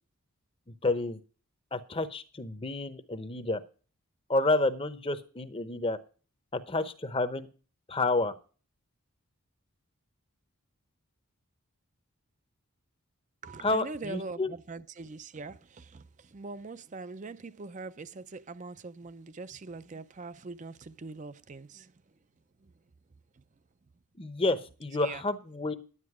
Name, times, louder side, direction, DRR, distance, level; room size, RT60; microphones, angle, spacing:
voice 1, 0.8-1.2 1.7-3.6 4.3-6.0 6.5-7.5 7.9-8.3 13.6-14.5 24.2-25.7, left 2 dB, 25° left, 0.8 m, -29 dB
voice 2, 13.4-21.9 22.6-22.7 23.4-23.5 25.0-25.2, right 3 dB, 35° right, 0.5 m, -42 dB
10.5 x 9.8 x 4.8 m
head